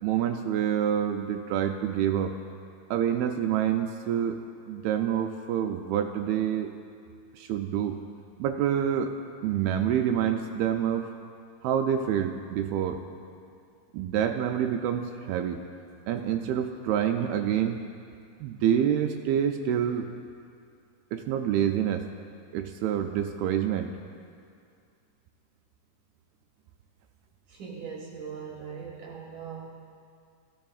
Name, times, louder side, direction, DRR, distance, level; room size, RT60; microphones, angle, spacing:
voice 1, 0.0-2.4 2.9-4.4 4.7-6.7 7.3-8.0 8.4-9.1 9.4-11.1 11.6-13.0 13.9-15.6 16.1-17.8 18.4-20.1 21.1-22.1 22.5-24.0, right 9 dB, 80° right, 5 dB, 2.3 m, -27 dB
voice 2, 27.5-29.7, right 6 dB, 65° right, -3 dB, 2.2 m, -40 dB
16.0 x 14.0 x 2.4 m, 2.3 s
omnidirectional pair, 4.5 m